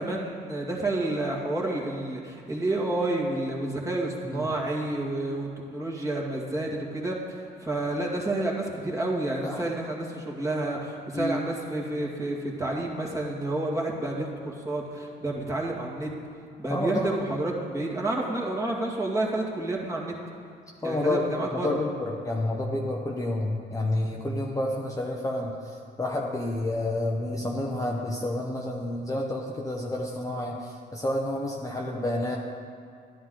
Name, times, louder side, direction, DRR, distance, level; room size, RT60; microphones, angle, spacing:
voice 1, 0.0-16.1 16.6-20.1 20.8-21.8, right 2 dB, 15° right, -3 dB, 2.2 m, -30 dB
voice 2, 16.7-17.2 20.8-25.5 26.0-32.4, left 1 dB, 15° left, -2 dB, 1.0 m, -29 dB
12.0 x 11.0 x 3.9 m, 2.3 s
cardioid pair, 85°, 19 cm